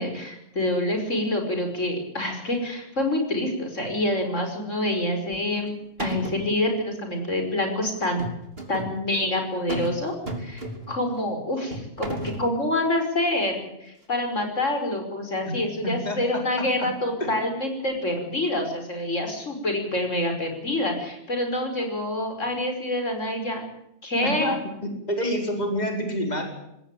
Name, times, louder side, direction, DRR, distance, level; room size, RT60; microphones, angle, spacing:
voice 1, 0.0-5.7 6.0-8.3 8.7-10.1 10.4-23.6 24.0-24.5, left 1 dB, 55° left, 5 dB, 5.7 m, -27 dB
sound 1, 5.3-5.7 6.0-6.5 8.0-8.9 9.7-10.0 10.3-11.0 11.7-12.5, right 1 dB, 40° right, 3.7 m, -33 dB
voice 2, 15.8-16.9 17.2-17.4 24.2-24.6 24.8-26.4, equal, 30° left, 3 dB, 4.9 m, -28 dB
20.0 x 17.5 x 9.2 m, 0.82 s
omnidirectional pair, 1.5 m